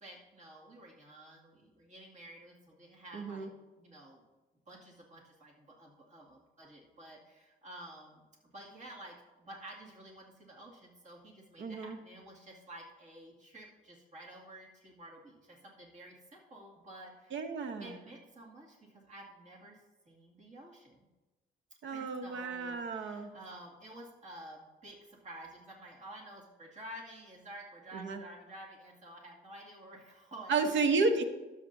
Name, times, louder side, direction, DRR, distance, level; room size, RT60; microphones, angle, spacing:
voice 1, 0.0-3.5 3.8-4.2 4.7-8.3 8.5-17.4 17.8-19.8 20.1-21.1 21.9-30.8, right 1 dB, 40° right, -3 dB, 2.3 m, -51 dB
voice 2, 3.1-3.5 11.6-12.0 17.3-18.0 21.8-23.3 27.9-28.2 30.5-31.2, right 4 dB, 70° right, 7 dB, 1.0 m, -32 dB
12.5 x 7.6 x 2.7 m, 1.1 s
cardioid pair, 90°, 20 cm